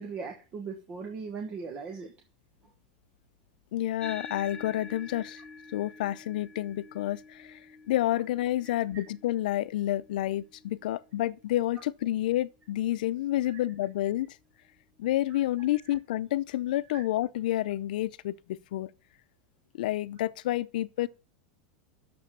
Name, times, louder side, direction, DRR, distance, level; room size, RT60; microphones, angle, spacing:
voice 1, 0.0-2.1 13.4-13.6 15.3-15.4 16.9-17.0, right 5 dB, 25° right, 1.1 m, -39 dB
voice 2, 3.7-5.4 5.7-7.6 7.9-14.4 15.0-18.9 19.7-21.1, left 14 dB, 70° left, 0.6 m, -29 dB
sound 1, 4.0-12.7, left 4 dB, 15° left, 0.8 m, -48 dB
9.3 x 7.0 x 7.4 m
supercardioid pair, 175°, 5 cm